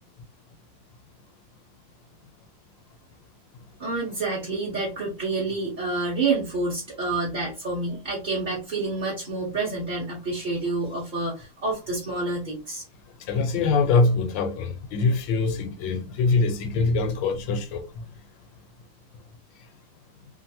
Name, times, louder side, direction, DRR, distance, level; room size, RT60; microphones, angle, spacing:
voice 1, 3.8-12.8, right 3 dB, 45° right, 0.6 m, -28 dB
voice 2, 13.3-17.8, left 3 dB, 80° left, 1.4 m, -23 dB
3.1 x 2.5 x 2.6 m
omnidirectional pair, 2.0 m